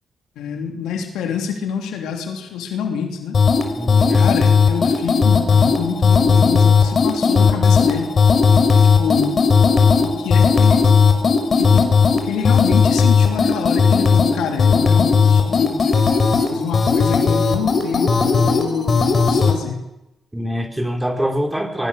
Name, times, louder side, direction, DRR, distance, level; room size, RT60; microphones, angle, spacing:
voice 1, 0.3-3.4 4.2-8.1 8.8-9.4 10.0-10.8 11.6-15.8 16.5-19.9, left 7 dB, 90° left, 3 dB, 3.2 m, -26 dB
sound 1, 3.3-19.6, left 5 dB, 50° left, 4.4 m, -15 dB
voice 2, 3.8-4.3 20.3-21.9, equal, 10° right, 5 dB, 4.4 m, -24 dB
24.0 x 22.0 x 6.7 m, 0.92 s
cardioid pair, 70°, 0 cm